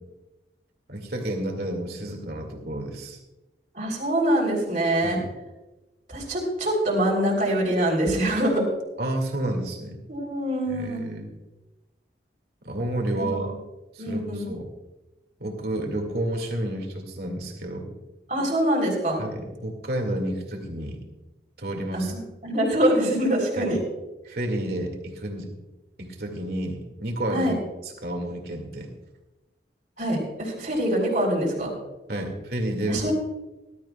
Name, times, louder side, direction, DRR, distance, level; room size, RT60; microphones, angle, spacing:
voice 1, 0.9-3.2 5.0-5.3 9.0-10.0 10.7-11.3 12.6-13.5 13.9-14.7 15.4-17.9 19.2-21.0 21.6-22.1 23.6-23.8 24.3-25.5 26.0-27.5 27.8-28.9 32.1-33.1, right 1 dB, 60° right, 2 dB, 2.2 m, -30 dB
voice 2, 3.8-5.2 6.1-8.7 10.1-11.0 13.1-13.4 14.0-14.5 18.3-19.2 21.9-23.8 27.3-27.6 30.0-31.7 32.9-33.1, right 1 dB, 45° right, -1 dB, 3.6 m, -24 dB
19.5 x 12.5 x 2.3 m, 1.0 s
head